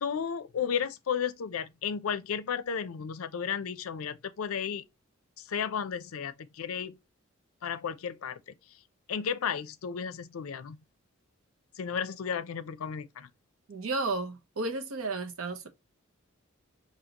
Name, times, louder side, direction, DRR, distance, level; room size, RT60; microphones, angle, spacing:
voice 1, 0.0-4.8 5.4-7.0 7.6-8.4 9.1-10.8 11.8-13.3, left 7 dB, 85° left, 0.5 m, -33 dB
voice 2, 13.7-15.7, right 3 dB, 90° right, 0.8 m, -33 dB
5.0 x 2.7 x 2.8 m
head